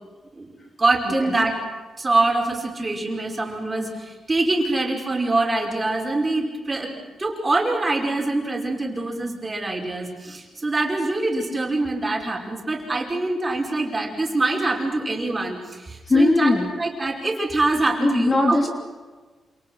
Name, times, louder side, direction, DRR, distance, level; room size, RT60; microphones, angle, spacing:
voice 1, 0.8-1.6 2.0-6.9 7.2-18.6, right 2 dB, 20° right, 1 dB, 5.4 m, -24 dB
voice 2, 16.1-16.7 18.0-18.7, left 2 dB, 30° left, 3 dB, 3.0 m, -19 dB
28.0 x 27.5 x 6.4 m, 1.3 s
cardioid pair, 115°, 0 cm